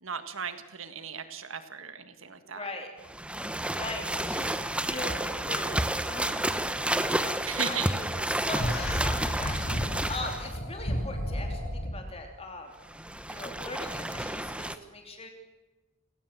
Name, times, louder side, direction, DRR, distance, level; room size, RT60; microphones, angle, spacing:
voice 1, 0.0-2.7 7.5-7.9, right 7 dB, 70° right, 9 dB, 1.7 m, -36 dB
voice 2, 2.4-2.9 3.3-4.6 4.8-8.1 8.3-12.7 13.3-15.3, left 2 dB, 30° left, 4 dB, 2.9 m, -40 dB
sound 1, 3.0-10.5 12.8-14.8, right 1 dB, 5° right, 1.0 m, -31 dB
sound 2, 8.6-12.0, equal, 50° left, 5.5 m, -32 dB
29.5 x 17.5 x 7.5 m, 1.1 s
head